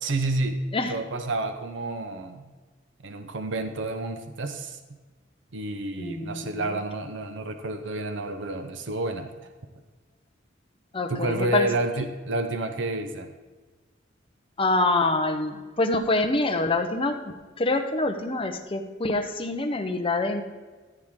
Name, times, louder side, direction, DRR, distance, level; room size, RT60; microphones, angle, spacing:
voice 1, 0.0-2.5 3.0-4.8 5.5-9.3 11.1-13.3, right 2 dB, 65° right, 8 dB, 0.7 m, -30 dB
voice 2, 6.0-6.8 10.9-11.7 14.6-20.4, left 2 dB, 30° left, 5 dB, 0.8 m, -26 dB
14.5 x 8.0 x 3.7 m, 1.3 s
head